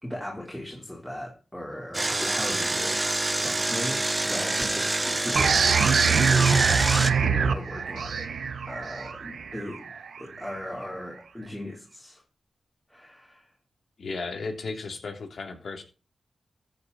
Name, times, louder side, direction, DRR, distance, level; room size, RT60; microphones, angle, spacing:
voice 1, 0.0-6.8 7.1-8.3 8.7-9.9 10.2-12.2 12.9-13.5, left 1 dB, 5° left, -3 dB, 4.1 m, -37 dB
Engine, 1.9-7.1, right 2 dB, 25° right, 0.9 m, -26 dB
sound 1, 5.3-10.7, right 6 dB, 80° right, 1.1 m, -24 dB
voice 2, 14.0-15.8, left 3 dB, 70° left, 5 dB, 3.1 m, -34 dB
14.5 x 8.9 x 4.3 m, 0.34 s
cardioid pair, 65°, 0 cm